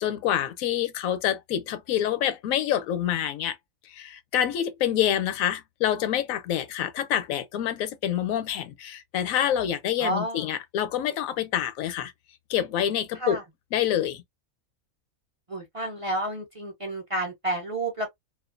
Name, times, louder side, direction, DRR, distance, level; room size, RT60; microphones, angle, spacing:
voice 1, 0.0-3.6 3.8-12.1 12.5-13.4 13.7-14.2, left 10 dB, 80° left, 1.0 m, -27 dB
voice 2, 10.0-10.5 13.2-13.4 15.5-18.1, right 1 dB, 40° right, 0.5 m, -30 dB
2.4 x 2.3 x 2.4 m
omnidirectional pair, 1.4 m